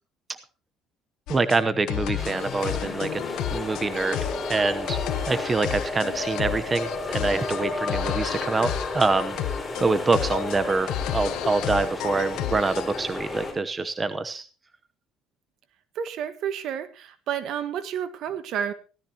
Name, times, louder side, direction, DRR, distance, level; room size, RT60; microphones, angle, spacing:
sound 1, 1.3-13.0, left 12 dB, 75° left, 1.1 m, -32 dB
voice 1, 1.3-3.2 3.5-5.0 5.3-14.5, right 3 dB, 25° right, 11 dB, 0.9 m, -26 dB
sound 2, 2.2-13.5, left 2 dB, 20° left, 5.4 m, -33 dB
voice 2, 15.9-18.7, right 8 dB, 65° right, 13 dB, 1.5 m, -30 dB
17.0 x 13.0 x 2.9 m, 0.34 s
cardioid pair, 95°, 0 cm